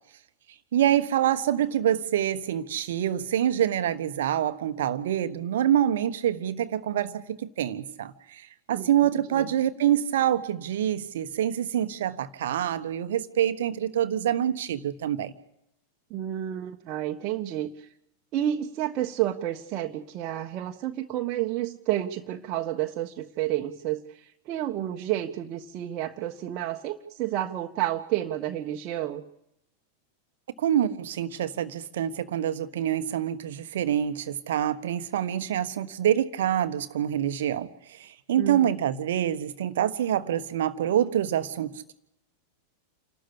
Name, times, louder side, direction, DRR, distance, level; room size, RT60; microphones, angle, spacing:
voice 1, 0.7-15.3 30.6-41.9, right 10 dB, 60° right, 1.3 m, -26 dB
voice 2, 16.1-17.9 18.3-24.0 24.5-29.2 38.4-38.7, right 12 dB, 40° right, 1.4 m, -30 dB
28.5 x 13.0 x 8.4 m
figure-of-eight pair, 90°, 0 cm